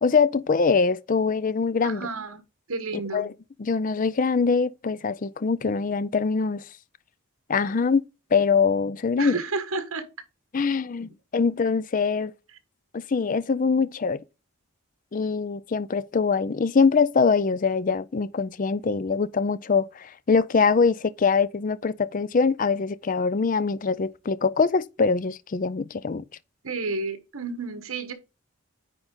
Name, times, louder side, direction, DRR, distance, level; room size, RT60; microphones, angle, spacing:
voice 1, 0.0-2.1 3.1-3.3 3.6-6.6 7.5-8.0 8.3-9.4 10.5-12.3 12.9-14.2 15.1-26.2, left 5 dB, 35° left, 0.4 m, -23 dB
voice 2, 1.8-2.4 2.7-3.3 9.2-10.1 26.6-28.1, right 3 dB, 75° right, 1.3 m, -31 dB
9.7 x 3.8 x 3.8 m
head